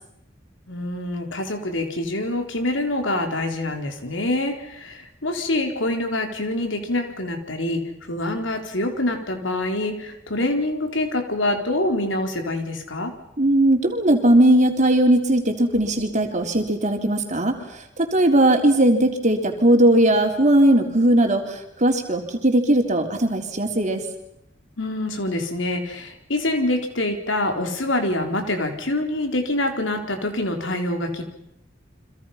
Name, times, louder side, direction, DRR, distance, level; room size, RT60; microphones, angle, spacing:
voice 1, 0.7-13.1 24.8-31.2, left 1 dB, 70° left, 4 dB, 4.2 m, -25 dB
voice 2, 13.4-24.0, right 1 dB, 40° right, 4 dB, 3.8 m, -18 dB
30.0 x 26.0 x 5.9 m, 0.78 s
head